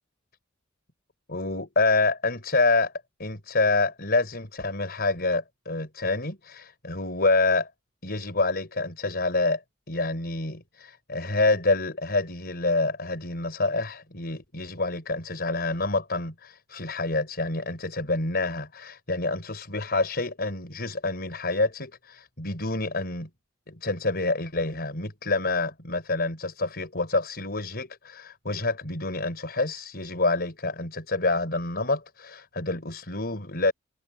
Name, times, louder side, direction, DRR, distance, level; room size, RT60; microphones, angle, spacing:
voice 1, 1.3-2.9 3.2-7.7 8.0-9.6 9.9-23.3 23.7-33.7, left 3 dB, 50° left, 5.4 m, -27 dB
head